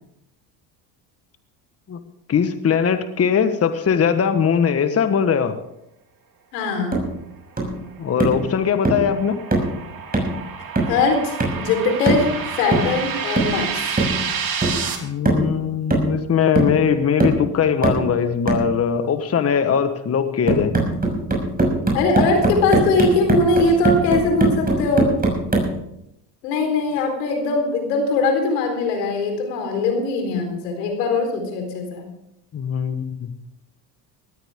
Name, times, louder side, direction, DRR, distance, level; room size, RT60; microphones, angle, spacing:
voice 1, 2.3-5.6 8.0-9.4 15.0-20.8 32.5-33.3, left 7 dB, 30° left, 9 dB, 1.3 m, -20 dB
voice 2, 6.5-7.0 10.9-12.3 12.6-13.8 21.9-25.1 26.4-32.1, left 3 dB, 85° left, 4 dB, 4.2 m, -21 dB
sound 1, 6.9-7.1 7.6-7.8 8.2-8.5 8.8-9.1 9.5-9.8 10.1-10.4 10.8-11.0 11.4-11.6 12.1-12.4 12.7-13.0 13.4-13.6 14.0-14.2 14.6-14.9 15.3-15.5 15.9-16.3 16.6-16.8 17.2-17.5 17.8-18.1 18.5-18.7 20.5-25.7, right 2 dB, 20° right, 6.1 m, -21 dB
sound 2, 8.1-14.9, right 6 dB, 45° right, 3.2 m, -29 dB
19.0 x 14.0 x 3.7 m, 0.80 s
supercardioid pair, 85°, 47 cm